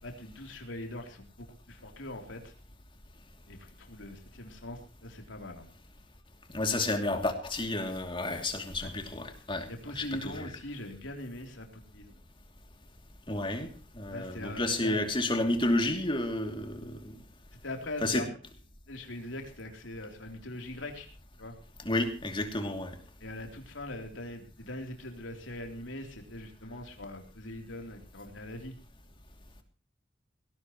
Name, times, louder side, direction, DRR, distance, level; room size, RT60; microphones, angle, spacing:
voice 1, 0.0-2.5 3.5-5.7 8.2-8.3 8.8-8.9 9.7-12.1 14.1-15.0 17.6-18.3 18.9-21.1 21.4-21.6 23.2-28.7, left 1 dB, 85° left, 3 dB, 3.4 m, -42 dB
voice 2, 6.5-9.7 9.9-10.5 13.3-13.7 13.9-17.2 18.0-18.2 21.8-23.0, left 2 dB, 25° left, 5 dB, 2.8 m, -31 dB
18.5 x 17.0 x 3.1 m, 0.35 s
head